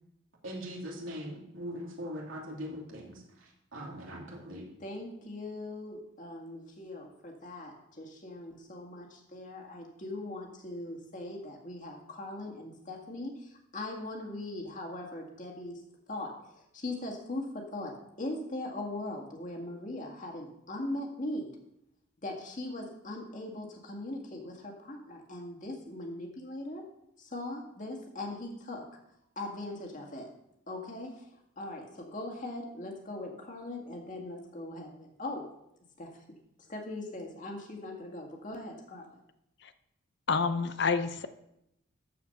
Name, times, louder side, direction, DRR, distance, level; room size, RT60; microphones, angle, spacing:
voice 1, 0.4-4.6, equal, 80° right, -2 dB, 2.9 m, -41 dB
voice 2, 4.8-15.8 16.1-21.6 22.2-26.8 27.2-28.8 29.4-30.3 30.7-31.3 31.6-35.4 36.0-36.2 36.7-39.1, left 1 dB, 40° left, 2 dB, 1.9 m, -40 dB
voice 3, 40.3-41.3, left 5 dB, 55° left, 11 dB, 0.6 m, -28 dB
13.5 x 4.9 x 6.6 m, 0.81 s
head